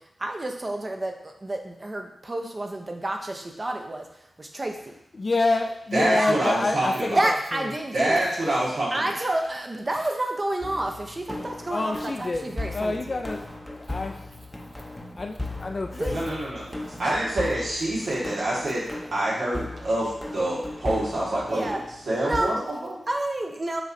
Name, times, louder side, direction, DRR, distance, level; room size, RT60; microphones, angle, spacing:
voice 1, 0.2-4.1 4.4-4.9 6.1-6.3 7.2-8.2 8.9-13.2 15.9-16.2 21.5-21.8 22.2-22.5 23.1-23.8, right 1 dB, 35° right, 3 dB, 0.6 m, -29 dB
voice 2, 5.1-7.7 11.7-13.4 13.8-14.3 15.2-16.4, left 3 dB, 45° left, 4 dB, 0.3 m, -28 dB
voice 3, 5.9-7.2 7.9-9.1 16.1-18.8 19.1-21.8 22.1-23.0, right 1 dB, 85° right, -7 dB, 1.6 m, -26 dB
sound 1, 10.6-22.4, left 2 dB, 15° left, 0.6 m, -37 dB
6.2 x 3.1 x 2.6 m, 0.78 s
cardioid pair, 65°, 0 cm